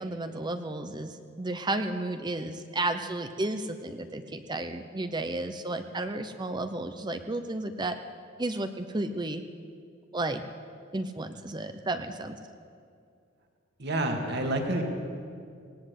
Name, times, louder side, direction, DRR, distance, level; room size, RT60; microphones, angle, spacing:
voice 1, 0.0-8.0 8.4-9.4 10.1-10.4 10.9-12.4, right 2 dB, 20° right, 8 dB, 0.8 m, -32 dB
voice 2, 13.8-14.8, right 1 dB, 60° right, 3 dB, 2.7 m, -28 dB
18.5 x 18.5 x 8.2 m, 2.3 s
head